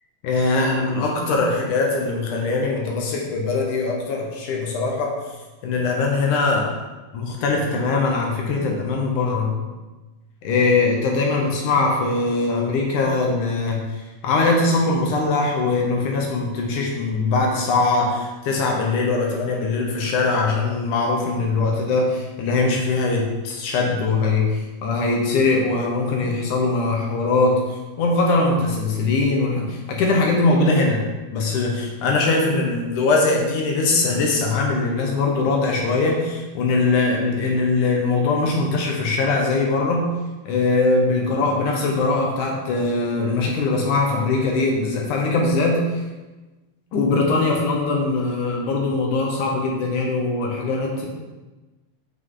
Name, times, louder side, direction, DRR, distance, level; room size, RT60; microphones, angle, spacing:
voice 1, 0.2-5.1 5.6-6.7 7.1-9.5 10.4-31.0 31.3-40.1 40.5-46.0 46.9-51.1, left 3 dB, 70° left, 0 dB, 2.4 m, -21 dB
7.9 x 5.6 x 3.8 m, 1.2 s
omnidirectional pair, 3.9 m